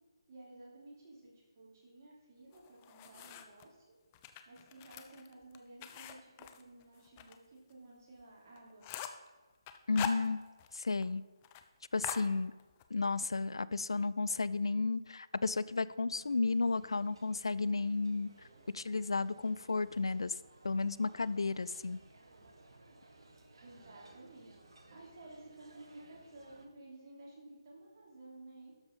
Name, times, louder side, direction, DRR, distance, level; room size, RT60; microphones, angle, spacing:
voice 1, 0.3-3.8 4.5-8.9 23.6-24.6 24.9-28.7, right 2 dB, 40° right, -3 dB, 3.2 m, -54 dB
sound 1, 2.5-3.7 4.1-7.4 7.7-7.8 8.2-8.3 8.6-9.3 9.7-10.8 11.0-11.1 11.4-11.6 12.0-12.9, left 10 dB, 20° left, 0.5 m, -44 dB
voice 2, 9.9-10.4 10.7-11.2 11.9-12.5 12.9-18.3 18.7-20.4 20.6-22.0, left 3 dB, 75° left, 18 dB, 0.4 m, -33 dB
sound 2, 16.1-26.7, right 2 dB, 65° right, 1.4 m, -60 dB
12.5 x 4.9 x 5.4 m, 1.3 s
figure-of-eight pair, 150°, 3 cm